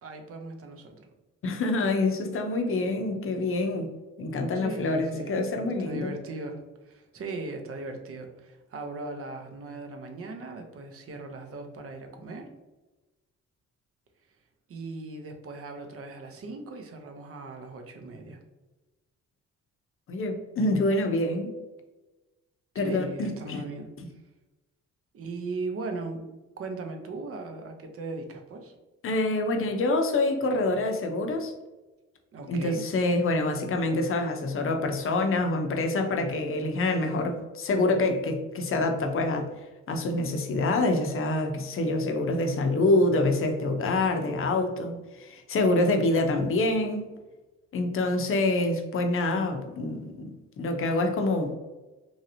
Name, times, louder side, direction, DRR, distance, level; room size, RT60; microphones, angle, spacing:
voice 1, 0.0-1.1 4.5-5.4 5.6-12.5 14.7-18.4 22.7-23.9 25.1-26.2 26.6-28.8 32.3-32.8, right 3 dB, 50° right, 4 dB, 0.7 m, -38 dB
voice 2, 1.4-3.9 4.2-6.1 20.1-21.5 22.8-23.6 29.0-31.5 32.5-39.5 39.9-47.0 47.7-51.5, left 2 dB, 45° left, 5 dB, 0.6 m, -26 dB
3.1 x 2.7 x 2.6 m, 1.1 s
cardioid pair, 90°, 30 cm